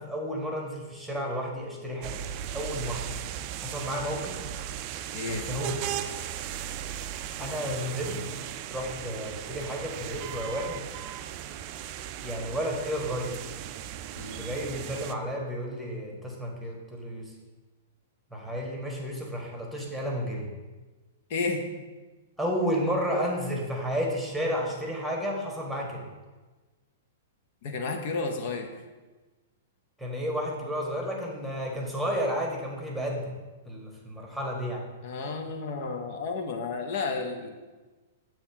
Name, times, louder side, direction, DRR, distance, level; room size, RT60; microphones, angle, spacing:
voice 1, 0.0-2.3 2.5-3.0 3.6-4.4 5.3-5.8 7.4-8.2 8.7-10.9 12.2-13.4 14.4-17.3 18.3-20.5 22.4-26.0 30.0-33.3 33.6-34.8, equal, ahead, -1 dB, 1.4 m, -32 dB
sound 1, 2.0-15.1, right 10 dB, 45° right, 0.3 m, -37 dB
voice 2, 5.1-5.5 14.1-14.5 21.3-21.6 27.6-28.7 35.0-37.6, left 4 dB, 55° left, 5 dB, 0.9 m, -32 dB
7.0 x 3.1 x 5.8 m, 1.3 s
hypercardioid pair, 125°, 0 cm